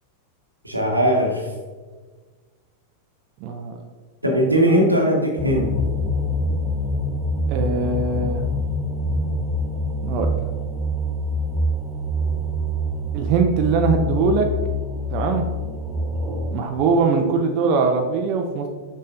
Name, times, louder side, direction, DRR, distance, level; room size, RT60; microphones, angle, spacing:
voice 1, 0.6-1.5 4.2-5.7, right 1 dB, 85° right, 1 dB, 1.0 m, -19 dB
voice 2, 3.4-3.8 7.5-8.4 10.0-10.3 13.1-14.5 15.1-15.4 16.5-18.7, right 4 dB, 40° right, 4 dB, 0.5 m, -21 dB
sound 1, 5.4-16.7, left 1 dB, 15° right, 1.4 m, -25 dB
6.5 x 5.4 x 2.6 m, 1.4 s
figure-of-eight pair, 90°, 0 cm